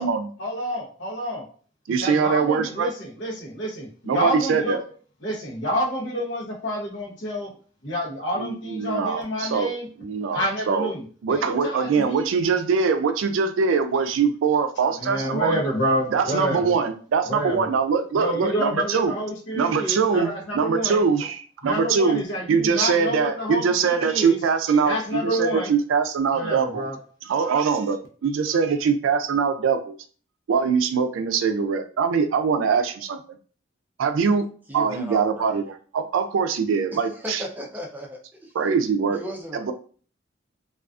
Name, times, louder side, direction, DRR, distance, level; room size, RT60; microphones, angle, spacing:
voice 1, 0.4-1.5 2.0-4.8 5.2-7.5 7.8-9.9 10.3-12.3 15.0-16.7 17.3-17.7 18.1-21.0 21.6-24.4 24.8-25.7 26.3-27.0, equal, 65° left, 0 dB, 0.8 m, -28 dB
voice 2, 1.9-2.9 4.1-4.8 8.4-9.7 10.0-10.9 11.2-15.6 16.1-19.1 19.5-22.2 22.5-26.9 27.2-29.9 30.5-33.2 34.0-34.4 34.7-37.4 38.5-39.2 39.5-39.7, right 5 dB, 85° right, 9 dB, 0.3 m, -23 dB
voice 3, 34.7-35.6 36.9-38.5 39.1-39.7, equal, 10° right, 0 dB, 0.4 m, -36 dB
2.4 x 2.3 x 2.3 m, 0.42 s
head